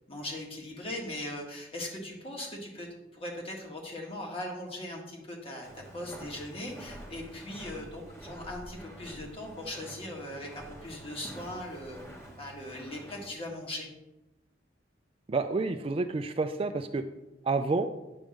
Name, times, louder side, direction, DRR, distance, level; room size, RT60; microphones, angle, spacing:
voice 1, 0.1-12.0 12.4-13.9, left 1 dB, 30° left, -1 dB, 1.6 m, -39 dB
Walk footsteps, 5.6-13.3, right 1 dB, 15° left, 1.3 m, -48 dB
voice 2, 15.3-17.0 17.4-17.9, right 3 dB, 30° right, 8 dB, 0.3 m, -29 dB
8.8 x 3.5 x 6.3 m, 0.96 s
head